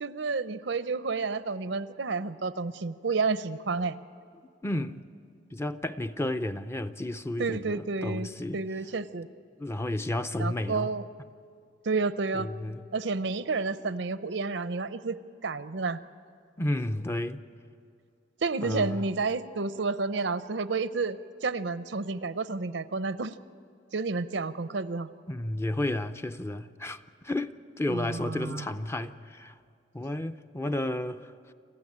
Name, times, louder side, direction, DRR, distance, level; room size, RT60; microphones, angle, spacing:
voice 1, 0.0-4.0 7.4-8.3 8.5-9.3 10.4-11.0 11.8-12.5 12.9-16.1 18.4-23.3 23.9-25.1 27.9-28.7, right 4 dB, 85° right, 0.7 m, -30 dB
voice 2, 4.6-5.0 5.5-8.6 9.6-10.9 12.3-12.8 16.6-17.4 18.6-19.1 25.3-29.5 29.9-31.3, left 1 dB, 15° left, 0.5 m, -32 dB
27.0 x 14.0 x 8.7 m
head